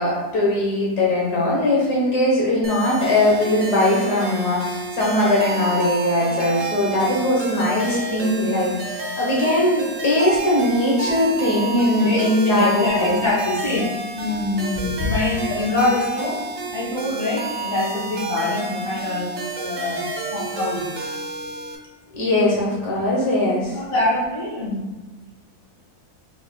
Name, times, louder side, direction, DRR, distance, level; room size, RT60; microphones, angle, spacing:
voice 1, 0.0-13.2 22.1-23.8, left 1 dB, 85° left, -4 dB, 1.6 m, -20 dB
sound 1, 2.6-21.8, right 3 dB, 45° right, 0.8 m, -30 dB
voice 2, 12.4-16.4 16.7-19.3 19.5-20.0 20.3-20.9 23.6-24.8, left 2 dB, 60° left, -6 dB, 2.0 m, -24 dB
4.7 x 4.1 x 2.2 m, 1.2 s
omnidirectional pair, 1.7 m